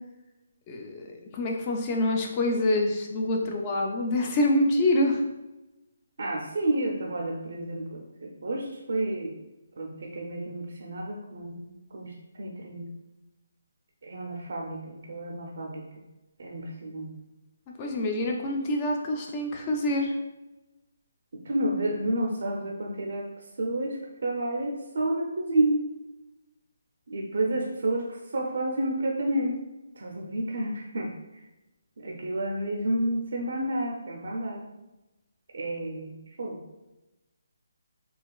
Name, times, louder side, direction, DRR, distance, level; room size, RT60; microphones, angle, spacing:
voice 1, 0.7-1.1 1.3-5.2 17.8-20.1, left 1 dB, 25° left, 1 dB, 0.4 m, -26 dB
voice 2, 6.2-9.3 9.8-12.9 14.0-15.9 16.4-17.1 21.4-23.3 23.6-25.8 27.1-29.6 30.0-31.1 32.0-34.6 35.5-36.6, right 1 dB, 60° right, -1 dB, 0.5 m, -30 dB
4.0 x 2.3 x 2.3 m, 1.0 s
hypercardioid pair, 165°, 0 cm